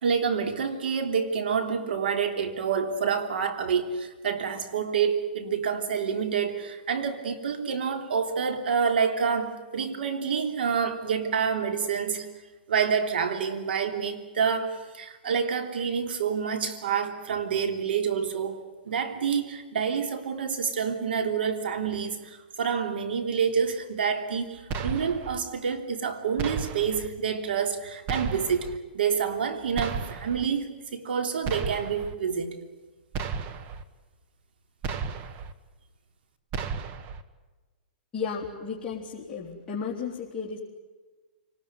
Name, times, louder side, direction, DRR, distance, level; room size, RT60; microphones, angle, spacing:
voice 1, 0.0-12.3 12.7-32.6, right 6 dB, 75° right, 3.3 m, -28 dB
sound 1, 24.7-25.4 26.4-27.1 28.1-28.8 29.8-30.5 31.4-32.1 33.1-33.8 34.8-35.5 36.5-37.2, right 6 dB, 30° right, 1.4 m, -33 dB
voice 2, 38.1-40.6, left 6 dB, 15° left, 3.6 m, -34 dB
29.0 x 19.0 x 9.7 m
hypercardioid pair, 145°, 6 cm